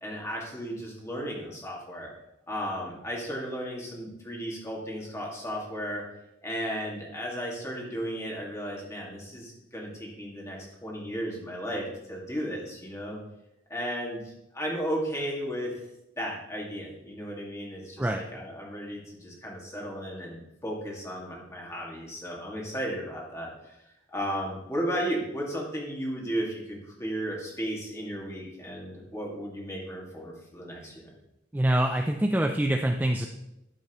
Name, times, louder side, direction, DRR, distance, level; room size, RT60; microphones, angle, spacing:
voice 1, 0.0-2.1 2.5-6.0 6.4-13.2 13.7-15.7 16.2-23.7 24.1-31.1, equal, 15° left, -3 dB, 1.9 m, -34 dB
voice 2, 31.5-33.3, right 1 dB, 10° right, 4 dB, 0.4 m, -25 dB
11.5 x 7.4 x 3.0 m, 0.88 s
head